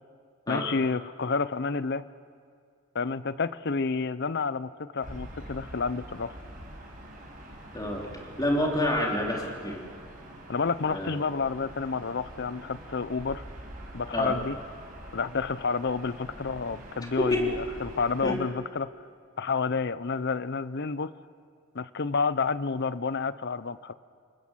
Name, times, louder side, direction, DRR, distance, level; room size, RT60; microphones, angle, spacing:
voice 1, 0.5-2.1 2.9-6.4 10.5-13.4 13.9-14.6 15.1-18.9 19.4-21.1 21.7-23.9, left 4 dB, 50° left, 16 dB, 0.7 m, -30 dB
Gull seagull / Ocean, 5.0-18.4, right 1 dB, 40° right, 5.0 m, -45 dB
voice 2, 8.4-9.8 10.9-11.1 14.1-14.3 17.2-17.4 18.2-18.3, left 1 dB, 20° left, -1 dB, 3.6 m, -27 dB
29.0 x 19.0 x 7.5 m, 2.2 s
head